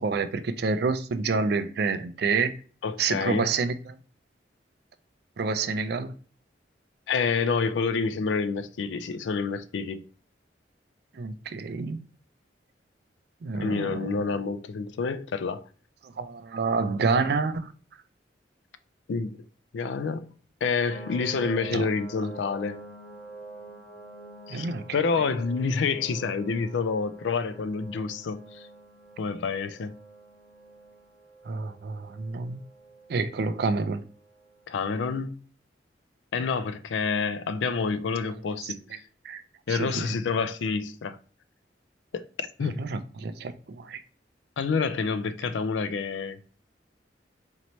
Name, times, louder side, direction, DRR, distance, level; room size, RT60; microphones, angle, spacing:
voice 1, 0.0-2.5 3.0-4.0 5.4-6.1 11.1-12.0 13.4-14.2 16.0-17.7 21.7-21.9 24.5-24.8 31.5-32.6 33.1-34.0 38.6-38.7 39.2-39.4 39.7-40.1 42.6-44.0, right 4 dB, 60° right, 0.4 m, -28 dB
voice 2, 2.8-3.5 7.1-10.0 13.6-15.6 19.1-19.4 19.7-20.3 20.6-22.8 24.5-28.7 29.2-30.0 34.7-35.4 36.3-38.8 39.7-41.2 42.1-42.8 44.6-46.4, left 5 dB, 90° left, 0.4 m, -28 dB
sound 1, 20.9-34.5, right 2 dB, ahead, 1.5 m, -47 dB
4.3 x 2.7 x 3.0 m
head